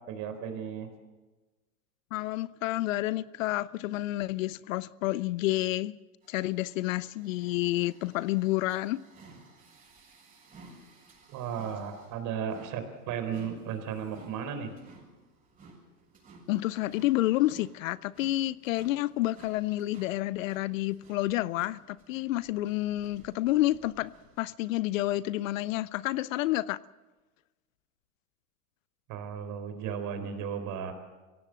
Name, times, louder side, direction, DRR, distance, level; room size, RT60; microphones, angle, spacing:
voice 1, 0.1-0.9 11.3-14.7 29.1-30.9, right 7 dB, 40° right, 4.0 m, -35 dB
voice 2, 2.1-5.9 6.3-9.0 16.5-24.1 24.4-26.8, left 16 dB, 60° left, 0.6 m, -29 dB
sound 1, 6.2-24.4, right 3 dB, 20° right, 7.9 m, -56 dB
24.0 x 17.0 x 7.6 m
hypercardioid pair, 115°, 45 cm